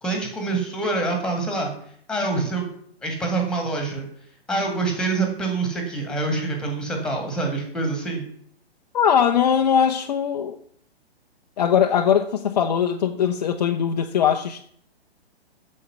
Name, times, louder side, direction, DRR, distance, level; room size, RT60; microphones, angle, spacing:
voice 1, 0.0-1.7 2.1-2.7 3.0-4.1 4.5-8.2, right 3 dB, ahead, 1.8 m, -25 dB
voice 2, 8.9-10.6 11.6-14.7, left 8 dB, 40° left, 0.7 m, -20 dB
8.6 x 6.6 x 6.7 m
figure-of-eight pair, 120°, 32 cm